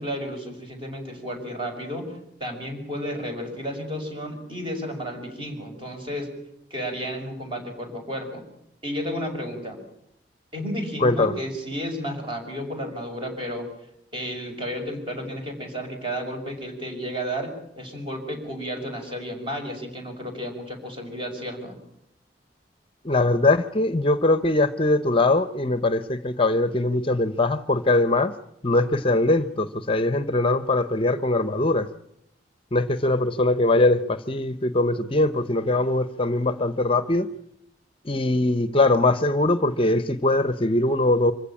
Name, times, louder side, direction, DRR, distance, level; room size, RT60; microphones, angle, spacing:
voice 1, 0.0-6.3 6.7-8.5 8.8-9.8 10.5-13.7 14.1-21.8, equal, 30° right, 4 dB, 6.0 m, -32 dB
voice 2, 11.0-11.3 23.0-28.3 28.6-31.9 32.7-37.3 38.0-41.3, left 2 dB, 30° left, 13 dB, 0.8 m, -21 dB
25.5 x 16.0 x 8.7 m, 0.80 s
head